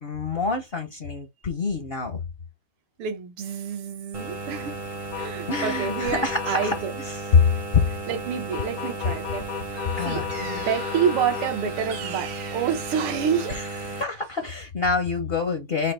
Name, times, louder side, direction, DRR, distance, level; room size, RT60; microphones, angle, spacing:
voice 1, 0.0-2.2 5.5-6.7 7.1-7.8 10.0-10.3 13.5-15.9, left 5 dB, 60° left, 0.6 m, -25 dB
voice 2, 3.0-4.8 5.2-7.0 8.1-13.6, right 7 dB, 80° right, 1.9 m, -28 dB
sound 1, 4.1-14.0, right 2 dB, 30° right, 0.6 m, -35 dB
sound 2, 5.1-6.8 8.5-11.5, left 13 dB, 80° left, 1.4 m, -34 dB
sound 3, 9.4-14.6, right 7 dB, 65° right, 1.2 m, -42 dB
5.7 x 2.1 x 4.1 m
omnidirectional pair, 2.4 m